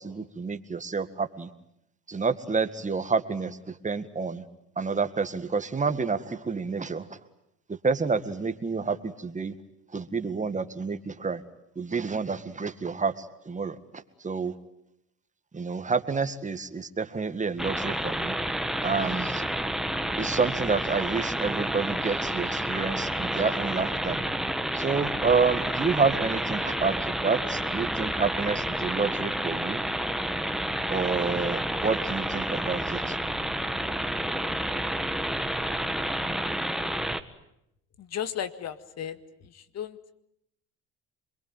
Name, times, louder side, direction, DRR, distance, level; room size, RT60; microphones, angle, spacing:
voice 1, 0.0-1.5 2.1-4.4 4.8-7.2 7.7-9.5 9.9-11.4 11.8-14.5 15.5-18.3 18.8-19.4 20.2-24.2 24.7-29.8 30.9-33.2, right 4 dB, 20° right, 10 dB, 1.9 m, -29 dB
sound 1, 17.6-37.2, right 1 dB, ahead, 1.6 m, -30 dB
voice 2, 38.0-39.2 39.4-40.1, left 9 dB, 50° left, 12 dB, 2.0 m, -35 dB
26.5 x 22.5 x 9.3 m, 0.79 s
supercardioid pair, 85°, 32 cm